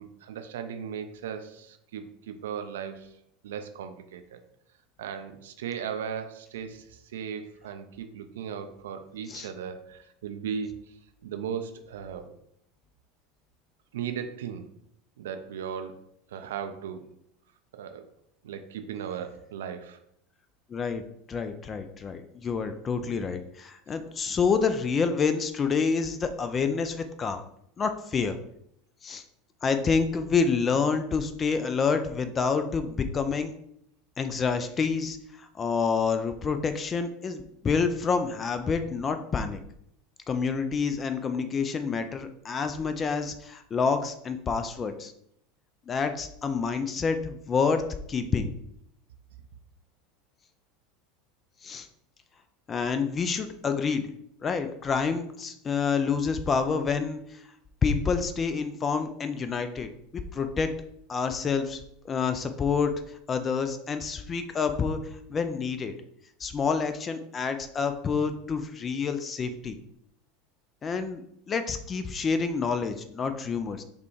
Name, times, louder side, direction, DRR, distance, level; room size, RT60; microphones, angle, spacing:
voice 1, 0.0-4.4 5.0-11.0 11.2-12.3 13.9-14.7 15.2-17.0 17.7-18.1 18.4-20.0, right 7 dB, 70° right, 7 dB, 0.4 m, -37 dB
voice 2, 20.7-21.0 21.3-27.4 27.8-28.4 29.0-29.2 29.6-33.5 34.2-39.6 40.3-45.1 45.9-47.8 48.1-48.5 51.6-51.9 52.7-54.0 54.4-57.4 57.8-60.7 61.1-62.9 63.3-65.0 65.3-65.9 66.4-69.8 70.8-73.8, left 5 dB, 30° left, 9 dB, 0.3 m, -28 dB
5.0 x 2.2 x 3.1 m, 0.73 s
figure-of-eight pair, 75°, 0 cm